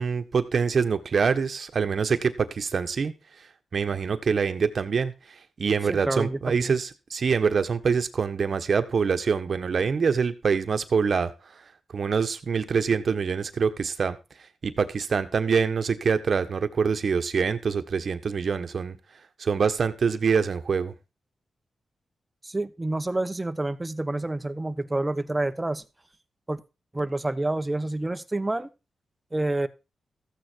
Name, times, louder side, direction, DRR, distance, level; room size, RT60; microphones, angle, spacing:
voice 1, 0.0-3.1 3.7-5.1 5.6-11.3 11.9-14.2 14.6-18.9 19.4-20.9, right 5 dB, 60° right, 1.4 m, -25 dB
voice 2, 5.9-6.8 22.4-25.8 26.5-26.6 26.9-28.7 29.3-29.7, right 2 dB, 20° right, 1.2 m, -28 dB
14.5 x 8.8 x 4.6 m
cardioid pair, 65°, 0 cm